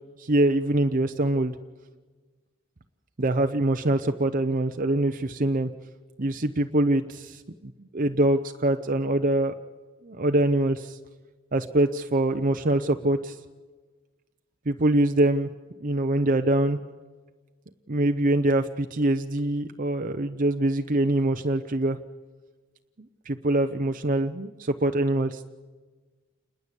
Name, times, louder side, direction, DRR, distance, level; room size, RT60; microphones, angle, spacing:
voice 1, 0.2-1.5 3.2-5.7 6.2-7.4 7.9-9.5 10.0-11.0 11.5-13.3 14.7-15.5 15.8-16.8 17.9-22.0 23.3-25.5, right 1 dB, 40° right, 7 dB, 0.8 m, -24 dB
28.5 x 20.5 x 8.3 m, 1.3 s
head